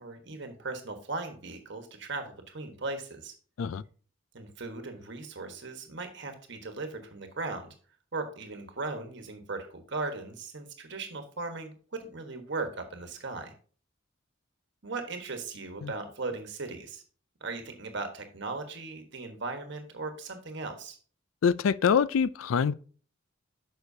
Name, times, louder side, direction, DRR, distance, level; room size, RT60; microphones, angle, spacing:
voice 1, 0.0-3.3 4.3-7.7 8.1-13.5 14.8-17.0 17.4-21.0, right 3 dB, 60° right, 1.3 m, -38 dB
voice 2, 21.4-22.7, left 6 dB, 85° left, 0.4 m, -25 dB
9.7 x 6.2 x 2.7 m
head